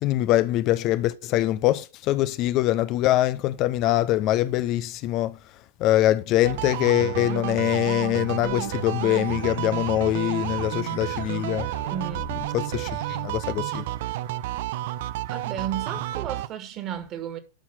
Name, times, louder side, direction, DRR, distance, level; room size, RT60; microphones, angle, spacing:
voice 1, 0.0-5.4 5.8-11.7 12.5-13.8, left 14 dB, 40° left, 0.6 m, -23 dB
sound 1, 6.4-16.5, right 16 dB, 50° right, 0.5 m, -31 dB
sound 2, 8.4-12.6, left 7 dB, 65° left, 2.6 m, -43 dB
voice 2, 11.9-12.3 15.3-17.4, right 9 dB, 35° right, 2.1 m, -33 dB
12.0 x 5.9 x 5.6 m
figure-of-eight pair, 90°, 0 cm